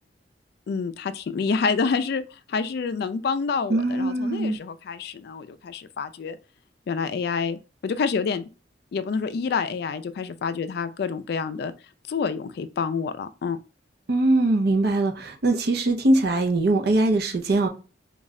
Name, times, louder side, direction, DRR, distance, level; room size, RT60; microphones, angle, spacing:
voice 1, 0.7-2.2 2.5-6.4 6.9-8.4 8.9-11.7 12.1-13.6, left 5 dB, 60° left, 0.3 m, -27 dB
voice 2, 3.7-4.6 14.1-17.7, right 2 dB, 60° right, 0.6 m, -21 dB
3.1 x 2.3 x 3.6 m
head